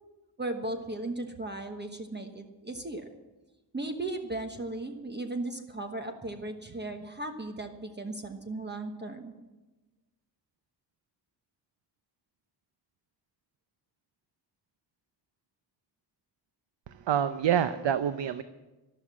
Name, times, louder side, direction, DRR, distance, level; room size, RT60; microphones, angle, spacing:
voice 1, 0.4-3.1 3.7-9.3, right 2 dB, 25° right, 5 dB, 1.2 m, -36 dB
voice 2, 16.9-18.4, right 9 dB, 80° right, 12 dB, 0.7 m, -27 dB
12.5 x 12.0 x 7.5 m, 1.1 s
wide cardioid pair, 135°, 43 cm